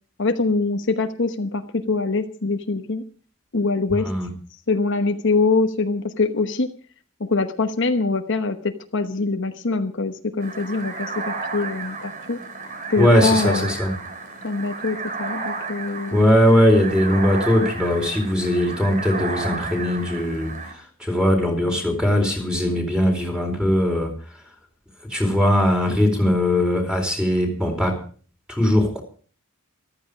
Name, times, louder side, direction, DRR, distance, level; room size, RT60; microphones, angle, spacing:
voice 1, 0.2-3.0 3.5-4.1 4.7-6.7 7.2-12.4 12.9-13.7 14.4-16.2, left 3 dB, 60° left, 7 dB, 1.1 m, -24 dB
sound 1, 10.4-20.7, right 4 dB, 40° right, 3.1 m, -32 dB
voice 2, 13.0-13.9 16.1-24.1 25.1-28.0 28.5-29.0, left 1 dB, 5° right, 2 dB, 4.1 m, -20 dB
14.5 x 13.5 x 5.1 m, 0.42 s
head